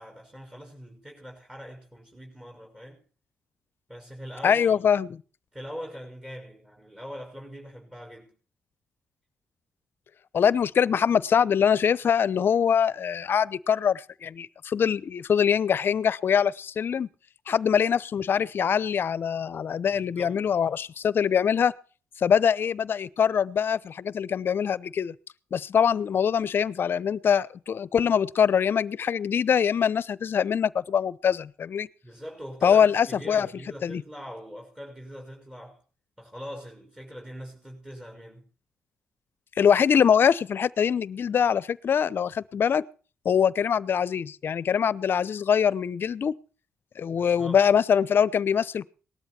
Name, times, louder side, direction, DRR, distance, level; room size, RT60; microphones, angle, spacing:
voice 1, 0.0-3.0 3.9-4.8 5.5-8.3 19.9-20.5 32.0-35.8 36.2-38.4 47.1-47.6, equal, 15° right, 6.0 m, -42 dB
voice 2, 4.4-5.1 10.3-17.1 17.5-21.7 22.2-25.1 25.5-31.9 32.6-33.5 33.8-34.0 39.6-42.8 43.2-46.3 47.0-48.9, left 7 dB, 60° left, 0.8 m, -23 dB
19.0 x 13.0 x 4.4 m
cardioid pair, 75°, 4 cm